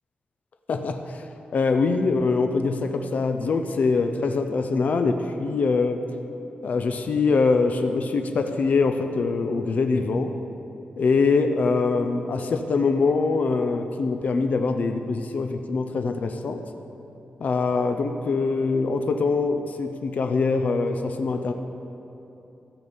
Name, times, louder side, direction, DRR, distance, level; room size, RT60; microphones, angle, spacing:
voice 1, 0.7-6.0 6.6-10.3 11.0-16.6 17.4-21.5, left 4 dB, 55° left, 6 dB, 0.6 m, -23 dB
14.0 x 7.0 x 5.5 m, 3.0 s
wide cardioid pair, 155°, 3 cm